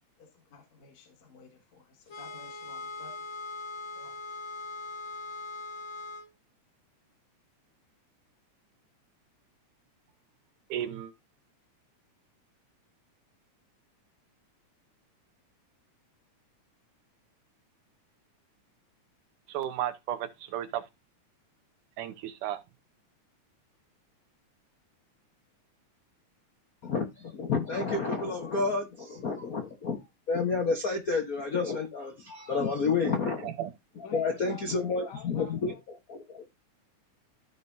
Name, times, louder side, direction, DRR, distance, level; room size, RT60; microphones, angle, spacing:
voice 1, 0.2-3.3 3.9-4.1 34.0-35.8, left 4 dB, 65° left, 3.0 m, -50 dB
sound 1, 2.1-6.3, left 3 dB, 40° left, 1.1 m, -40 dB
voice 2, 10.7-11.1 19.5-20.8 22.0-22.6 33.4-33.7, right 11 dB, 85° right, 2.5 m, -34 dB
voice 3, 26.8-30.0 30.3-33.5 34.1-36.4, left 4 dB, 90° left, 0.7 m, -30 dB
14.5 x 5.4 x 2.7 m
omnidirectional pair, 3.5 m